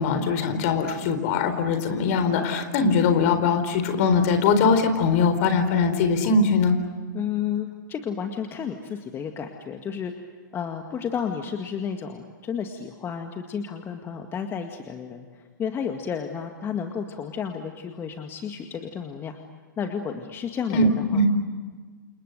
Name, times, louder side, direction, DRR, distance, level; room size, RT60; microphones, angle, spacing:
voice 1, 0.0-6.8 20.7-21.3, left 4 dB, 45° left, 9 dB, 4.1 m, -21 dB
voice 2, 7.1-10.3 10.5-19.4 19.8-21.2, left 7 dB, 20° left, 5 dB, 2.0 m, -32 dB
29.0 x 29.0 x 6.7 m, 1.5 s
figure-of-eight pair, 110°, 11 cm